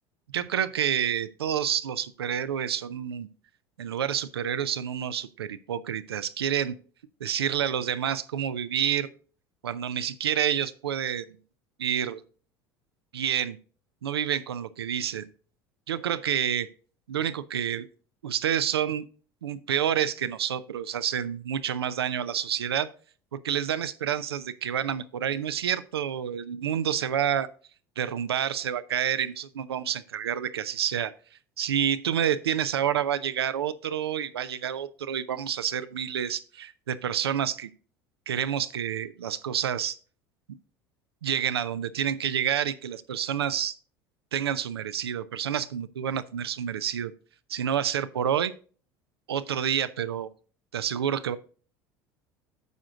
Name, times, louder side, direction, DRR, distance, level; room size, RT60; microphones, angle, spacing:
voice 1, 0.3-3.3 3.8-6.8 7.2-9.1 9.6-11.3 11.8-12.2 13.1-13.6 14.0-15.3 15.9-16.7 17.1-17.9 18.2-19.0 19.4-22.9 23.3-27.5 28.0-31.1 31.6-37.7 38.3-40.0 41.2-43.7 44.3-47.1 47.5-48.5 49.3-50.3 50.7-51.4, right 9 dB, 90° right, 12 dB, 0.6 m, -28 dB
9.4 x 6.2 x 3.7 m, 0.39 s
hypercardioid pair, 75°, 13 cm